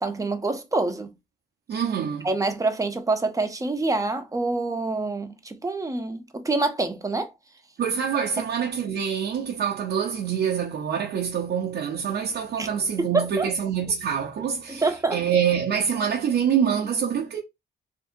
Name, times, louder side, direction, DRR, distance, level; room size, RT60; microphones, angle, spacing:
voice 1, 0.0-1.1 2.2-7.3 12.6-12.7 13.1-13.5 14.7-15.2, right 3 dB, 15° right, 0.7 m, -26 dB
voice 2, 1.7-2.3 7.8-17.4, right 8 dB, 60° right, 0.7 m, -26 dB
3.5 x 2.7 x 2.7 m
cardioid pair, 90°, 20 cm